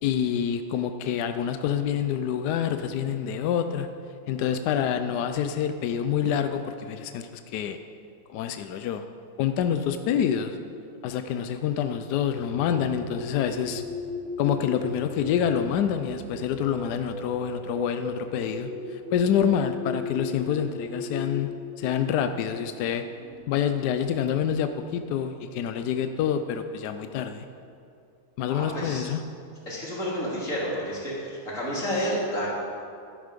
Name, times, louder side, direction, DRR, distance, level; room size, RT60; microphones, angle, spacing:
voice 1, 0.0-3.9 4.3-7.8 8.3-9.0 9.4-10.6 11.0-13.8 14.4-21.5 21.8-23.0 23.5-27.4 28.4-29.2, left 8 dB, 80° left, 8 dB, 0.9 m, -27 dB
sound 1, 12.4-23.4, left 2 dB, 70° right, 0.5 m, -37 dB
voice 2, 28.5-29.1 29.7-32.5, equal, 35° left, -6 dB, 3.3 m, -30 dB
11.5 x 10.0 x 5.2 m, 2.5 s
omnidirectional pair, 2.3 m